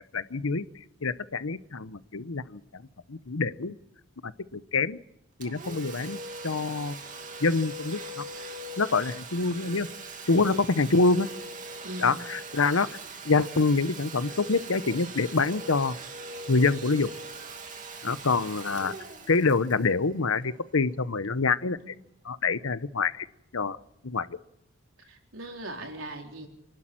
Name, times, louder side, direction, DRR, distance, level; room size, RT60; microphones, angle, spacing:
voice 1, 0.1-0.6 1.0-2.8 3.1-3.7 4.2-5.0 5.4-7.0 7.4-8.2 8.8-9.9 10.3-11.3 12.0-12.9 13.2-16.0 16.5-17.1 18.0-18.9 19.3-21.8 22.3-23.3 23.5-23.8 24.0-24.4, left 4 dB, 85° left, 14 dB, 0.9 m, -26 dB
Domestic sounds home sounds, 5.4-20.9, right 2 dB, 40° right, 2.6 m, -41 dB
voice 2, 10.3-10.7 11.8-12.2 17.9-18.1 21.8-21.9 25.0-26.5, right 1 dB, 80° right, 2 dB, 4.1 m, -40 dB
27.5 x 12.0 x 8.9 m, 0.81 s
head